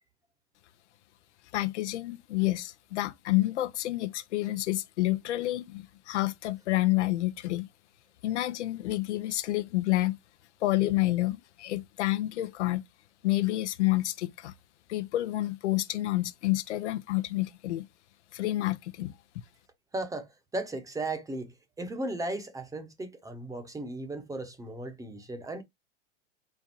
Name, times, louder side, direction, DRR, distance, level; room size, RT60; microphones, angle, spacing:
voice 1, 1.5-7.7 8.2-10.2 10.6-12.8 13.2-14.5 14.9-17.8 18.3-19.1, left 17 dB, 75° left, 0.7 m, -29 dB
voice 2, 19.9-25.6, right 2 dB, 10° right, 0.8 m, -36 dB
4.4 x 2.3 x 4.3 m
hypercardioid pair, 120°, 36 cm